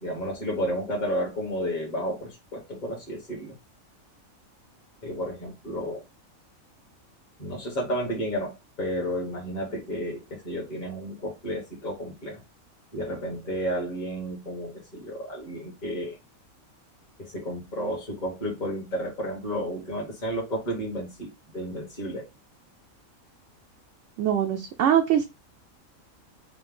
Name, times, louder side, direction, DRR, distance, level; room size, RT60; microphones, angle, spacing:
voice 1, 0.0-3.6 5.0-6.0 7.4-12.4 12.9-16.2 17.2-22.3, equal, 35° left, 1.3 m, -32 dB
voice 2, 24.2-25.2, right 9 dB, 65° right, 0.8 m, -22 dB
5.1 x 2.2 x 3.7 m
omnidirectional pair, 1.4 m